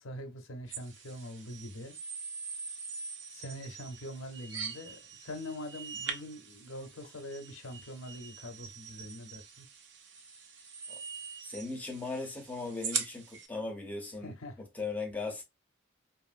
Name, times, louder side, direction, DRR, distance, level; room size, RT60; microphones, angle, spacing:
voice 1, 0.0-1.9 3.3-9.7 14.2-14.6, left 1 dB, 85° left, 0.6 m, -43 dB
sound 1, 0.7-13.5, right 5 dB, 60° right, 0.5 m, -43 dB
voice 2, 11.4-15.4, left 3 dB, 10° left, 0.7 m, -38 dB
2.9 x 2.5 x 2.4 m
head